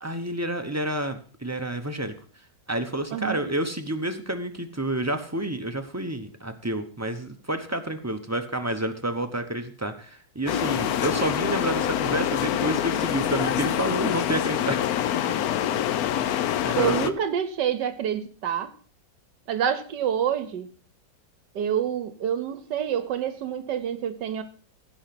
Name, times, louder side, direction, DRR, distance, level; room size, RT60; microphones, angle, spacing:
voice 1, 0.0-2.1 2.7-14.9 16.2-17.1, right 1 dB, 20° right, 6 dB, 0.4 m, -29 dB
voice 2, 3.1-3.4 16.8-18.7 19.5-20.7 21.5-24.4, right 9 dB, 70° right, 12 dB, 1.4 m, -27 dB
sound 1, 10.5-17.1, left 11 dB, 65° left, 1.0 m, -26 dB
16.0 x 5.7 x 5.9 m, 0.43 s
omnidirectional pair, 2.0 m